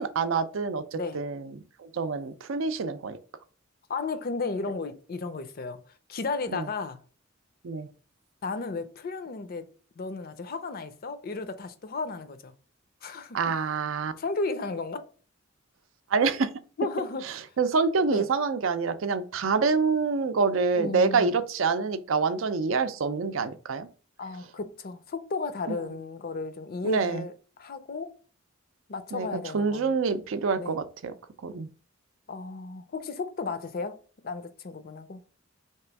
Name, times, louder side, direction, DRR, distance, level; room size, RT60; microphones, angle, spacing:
voice 1, 0.0-3.2 6.5-6.7 7.6-7.9 13.3-14.1 16.1-16.5 17.6-23.9 26.8-27.2 29.1-29.3 29.5-31.1 31.4-31.7, right 4 dB, 75° right, 0.5 m, -26 dB
voice 2, 3.9-5.8 6.1-7.0 8.4-9.7 10.0-12.5 13.0-13.4 14.2-15.0 16.8-17.3 18.1-18.3 20.7-21.3 24.2-28.1 28.9-29.9 30.6-30.8 32.3-34.0 34.2-35.2, left 3 dB, 50° left, 0.5 m, -34 dB
3.3 x 3.0 x 4.5 m
head